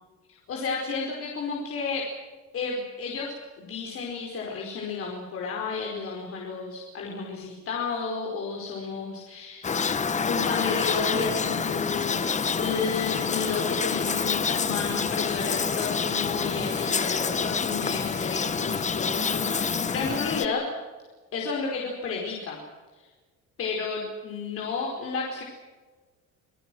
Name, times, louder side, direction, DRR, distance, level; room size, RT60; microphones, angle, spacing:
voice 1, 0.5-2.1 2.5-9.8 10.2-12.2 12.6-20.7 21.3-22.6 23.6-25.4, left 5 dB, 50° left, -1 dB, 4.9 m, -32 dB
sound 1, 9.6-20.5, left 5 dB, 25° left, 1.1 m, -27 dB
26.5 x 18.5 x 7.9 m, 1.3 s
cardioid pair, 140°, 30 cm